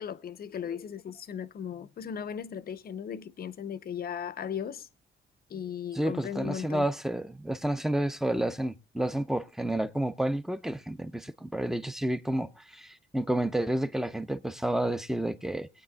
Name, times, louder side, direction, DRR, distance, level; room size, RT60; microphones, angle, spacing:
voice 1, 0.0-4.9 5.5-6.9, left 8 dB, 50° left, 0.7 m, -37 dB
voice 2, 5.9-15.7, right 1 dB, ahead, 0.7 m, -30 dB
22.0 x 8.7 x 2.3 m
cardioid pair, 90°, 20 cm